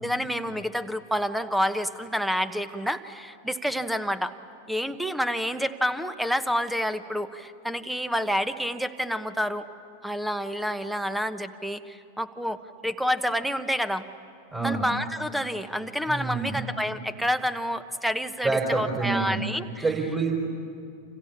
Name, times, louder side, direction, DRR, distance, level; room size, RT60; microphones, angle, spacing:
voice 1, 0.0-4.4 4.7-9.7 10.0-14.1 14.6-19.8, equal, ahead, 12 dB, 1.2 m, -28 dB
voice 2, 14.5-14.9 16.1-16.6 18.4-19.4 19.8-20.3, right 4 dB, 20° right, -1 dB, 4.6 m, -27 dB
29.5 x 27.5 x 7.4 m, 2.4 s
figure-of-eight pair, 90°, 0 cm